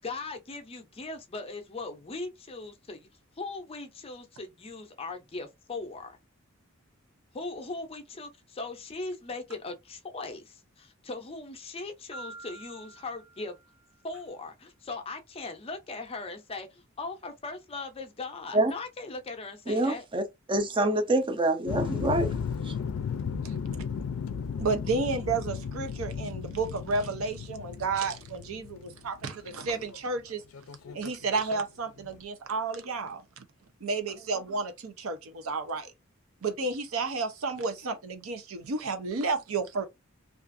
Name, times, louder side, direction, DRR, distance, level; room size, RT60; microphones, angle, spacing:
voice 1, 0.0-3.1 3.4-6.2 7.3-13.5 14.0-20.1, left 3 dB, 30° left, 0.5 m, -39 dB
Piano, 12.1-14.0, right 2 dB, 45° right, 1.2 m, -47 dB
voice 2, 19.7-20.2 20.5-22.3 22.6-22.7, right 1 dB, 25° right, 0.5 m, -26 dB
sound 1, 21.7-30.0 30.4-31.6 32.0-32.2, left 6 dB, 85° left, 0.4 m, -35 dB
voice 3, 24.6-30.4 30.9-33.4 33.8-35.9 36.4-39.9, right 4 dB, 80° right, 0.6 m, -31 dB
2.4 x 2.4 x 2.5 m
head